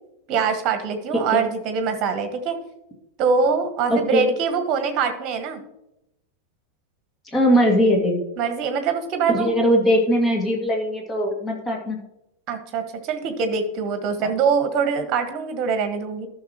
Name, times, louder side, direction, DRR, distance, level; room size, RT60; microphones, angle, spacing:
voice 1, 0.3-2.6 3.2-5.6 8.4-9.5 12.5-16.3, right 5 dB, 35° right, 7 dB, 1.5 m, -23 dB
voice 2, 3.9-4.2 7.3-8.2 9.3-12.0 14.2-14.3, equal, 15° left, 0 dB, 2.3 m, -20 dB
13.5 x 6.4 x 3.0 m, 0.83 s
figure-of-eight pair, 90°, 0 cm